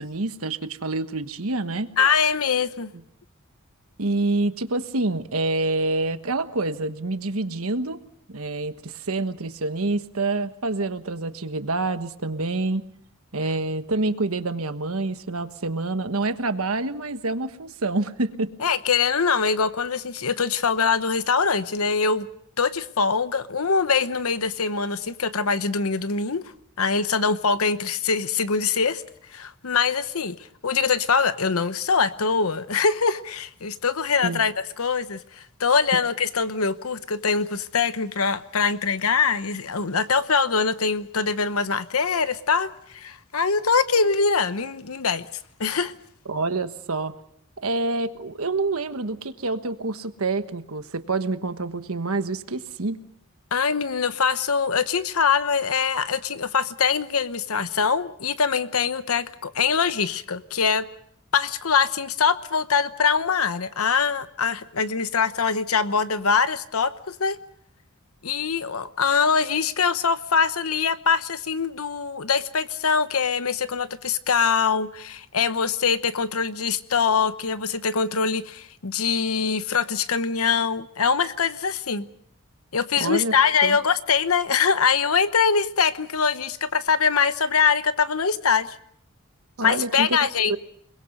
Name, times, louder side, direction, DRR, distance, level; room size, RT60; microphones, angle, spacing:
voice 1, 0.0-1.9 4.0-8.0 8.3-12.9 13.3-18.5 34.2-34.4 46.2-47.1 47.6-53.0 83.0-83.3 83.6-83.8 89.6-90.6, right 2 dB, 80° right, 1.3 m, -27 dB
voice 2, 2.0-2.9 18.6-22.3 22.6-26.4 26.8-29.0 29.3-30.4 30.6-45.3 45.6-45.9 53.5-60.9 61.3-67.4 68.2-82.0 82.7-88.8 89.6-90.6, left 5 dB, 85° left, 1.0 m, -23 dB
29.5 x 21.5 x 5.3 m
head